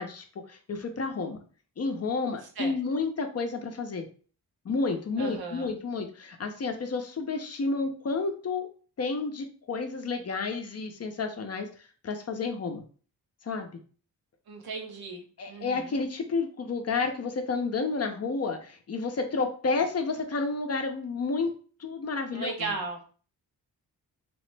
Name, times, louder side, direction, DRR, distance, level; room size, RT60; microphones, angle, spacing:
voice 1, 0.0-1.4 1.8-4.1 4.6-8.7 9.0-11.7 12.0-12.8 13.4-13.8 15.4-22.8, left 4 dB, 40° left, 5 dB, 0.6 m, -31 dB
voice 2, 5.2-5.7 14.5-16.0 22.3-23.0, right 3 dB, 70° right, 3 dB, 0.8 m, -36 dB
3.0 x 2.0 x 3.2 m, 0.40 s
cardioid pair, 70°, 39 cm